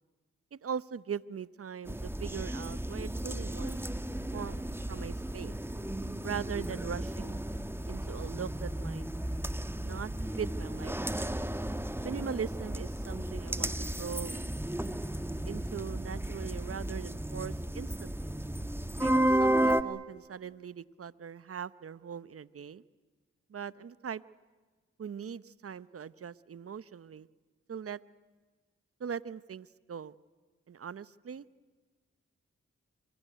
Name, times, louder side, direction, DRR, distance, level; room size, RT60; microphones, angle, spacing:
voice 1, 0.5-3.8 4.3-5.5 6.2-7.4 7.9-9.1 9.8-10.1 10.4-11.4 12.0-14.4 15.5-18.3 19.0-22.8 23.5-24.2 25.0-27.3 27.7-28.0 29.0-30.1 30.7-31.4, right 7 dB, 50° right, 17 dB, 0.9 m, -40 dB
sound 1, 1.9-19.8, right 1 dB, 10° right, 1.7 m, -33 dB
26.0 x 22.0 x 9.2 m, 1.4 s
supercardioid pair, 45°, 29 cm